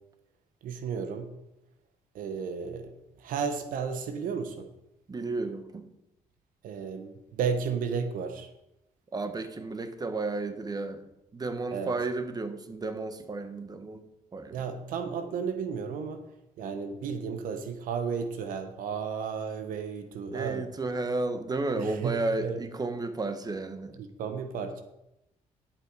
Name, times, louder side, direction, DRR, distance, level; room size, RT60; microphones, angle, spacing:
voice 1, 0.6-1.3 2.1-4.7 6.6-8.5 11.7-11.9 14.5-16.2 16.6-20.7 21.8-22.6 24.0-24.8, right 6 dB, 85° right, 8 dB, 1.1 m, -33 dB
voice 2, 5.1-5.9 9.1-11.0 11.3-14.0 14.3-14.6 20.3-24.0, right 3 dB, 30° right, 9 dB, 1.3 m, -32 dB
11.0 x 7.4 x 4.8 m, 0.87 s
cardioid pair, 80°, 14 cm